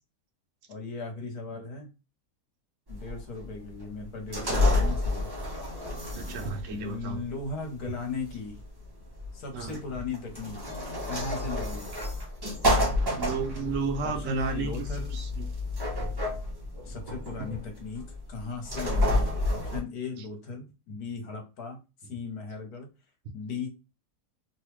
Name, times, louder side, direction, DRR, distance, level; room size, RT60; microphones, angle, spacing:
voice 1, 0.7-1.9 2.9-5.3 6.7-8.6 9.3-10.6 11.1-11.9 14.0-15.2 16.8-22.9 23.3-23.7, left 4 dB, 75° left, 1.5 m, -37 dB
sound 1, 2.9-19.8, left 1 dB, 20° right, 0.6 m, -30 dB
voice 2, 6.1-7.2 9.5-9.8 13.2-14.8 15.1-15.5 16.0-16.1 17.1-17.2, right 5 dB, 60° right, 1.0 m, -33 dB
3.1 x 2.3 x 3.1 m
omnidirectional pair, 1.7 m